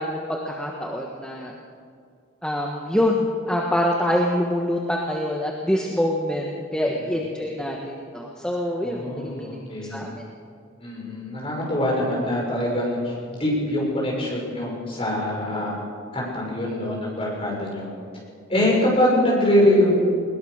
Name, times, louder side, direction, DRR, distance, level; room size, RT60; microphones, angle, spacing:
voice 1, 0.0-1.5 2.4-9.5 9.8-10.2, left 1 dB, 5° left, -1 dB, 1.3 m, -25 dB
voice 2, 8.8-10.0 10.8-15.8 16.1-17.9 18.5-19.9, left 1 dB, 25° left, -3 dB, 6.2 m, -23 dB
21.0 x 20.5 x 6.6 m, 2.3 s
head